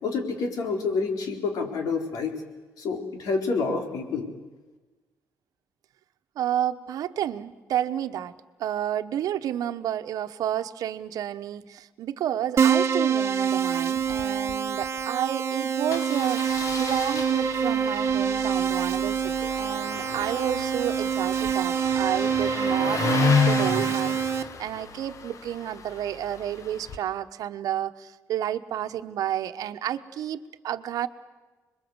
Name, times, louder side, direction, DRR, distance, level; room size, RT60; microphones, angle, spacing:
voice 1, 0.0-2.4 2.8-4.3, left 4 dB, 75° left, 4 dB, 4.2 m, -28 dB
voice 2, 6.3-8.3 8.6-31.1, right 11 dB, 75° right, 11 dB, 1.1 m, -31 dB
Keyboard (musical), 12.6-24.4, right 7 dB, 45° right, 1.4 m, -26 dB
Engine starting, 14.0-14.2 14.5-14.6 14.8-15.0 15.9-27.0, left 6 dB, 55° left, 1.6 m, -32 dB
26.5 x 21.5 x 8.1 m, 1.2 s
cardioid pair, 85°, 6 cm